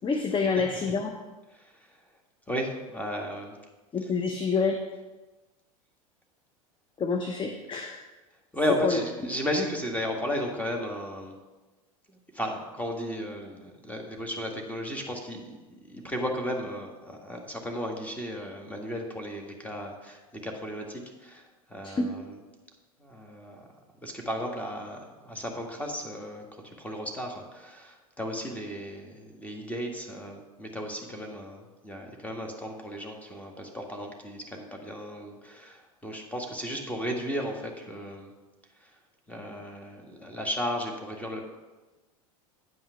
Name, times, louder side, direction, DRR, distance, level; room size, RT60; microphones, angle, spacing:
voice 1, 0.0-1.1 3.9-4.8 7.0-8.0 8.8-9.0 21.8-22.1, left 4 dB, 25° left, 5 dB, 0.8 m, -27 dB
voice 2, 1.5-2.0 2.5-3.6 8.5-11.4 12.1-22.4 23.0-23.7 24.0-38.3 38.8-39.0 39.3-41.4, equal, 10° left, 1 dB, 1.9 m, -34 dB
9.4 x 5.7 x 5.7 m, 1.2 s
hypercardioid pair, 85°, 18 cm